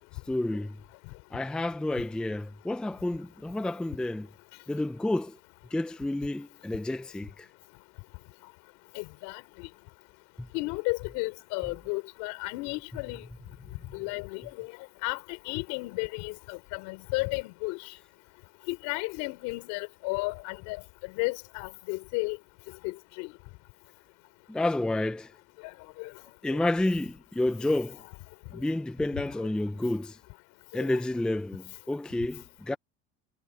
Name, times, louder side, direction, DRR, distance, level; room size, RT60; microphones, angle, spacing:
voice 1, 0.3-0.8 1.3-4.3 4.7-5.4 5.7-7.5 10.4-10.5 24.5-25.3 26.4-28.0 28.5-30.2 30.7-32.8, left 1 dB, 5° left, 0.5 m, -30 dB
voice 2, 8.9-9.4 10.5-13.2 13.9-14.7 15.0-15.2 15.5-17.8 18.7-20.8 21.1-22.4 22.8-23.3 25.6-25.7 26.0-26.1 26.5-26.6 30.8-30.9, left 26 dB, 75° left, 4.3 m, -33 dB
cardioid pair, 125°, 31 cm